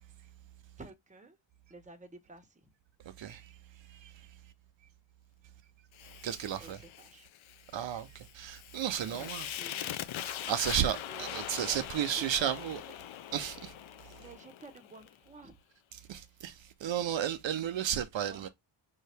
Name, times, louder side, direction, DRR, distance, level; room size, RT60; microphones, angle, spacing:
voice 1, 0.8-1.4 1.7-2.7 6.6-7.3 9.1-9.9 10.2-11.3 11.6-11.8 12.1-12.5 12.8-13.0 14.1-15.5 18.3-18.4, right 3 dB, 15° right, 1.0 m, -52 dB
voice 2, 3.2-4.3 6.2-6.8 7.7-9.6 10.2-12.8 13.3-13.7 16.1-18.5, right 9 dB, 65° right, 0.7 m, -34 dB
Fire, 5.9-15.2, left 11 dB, 75° left, 0.7 m, -42 dB
5.5 x 2.8 x 3.3 m
wide cardioid pair, 140°, 48 cm